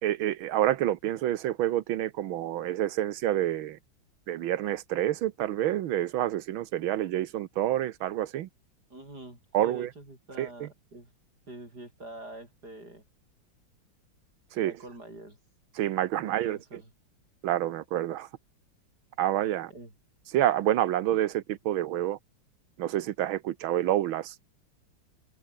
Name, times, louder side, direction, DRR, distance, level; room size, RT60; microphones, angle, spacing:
voice 1, 0.0-3.8 4.3-8.5 9.5-9.9 10.4-10.7 14.5-14.7 15.7-16.6 17.4-18.3 19.2-19.7 20.3-22.2 22.8-24.3, right 12 dB, 85° right, 1.7 m, -28 dB
voice 2, 8.9-11.1 11.5-13.0 14.6-15.4 16.2-16.9 19.7-19.9, right 1 dB, 50° right, 8.3 m, -46 dB
omnidirectional pair, 2.2 m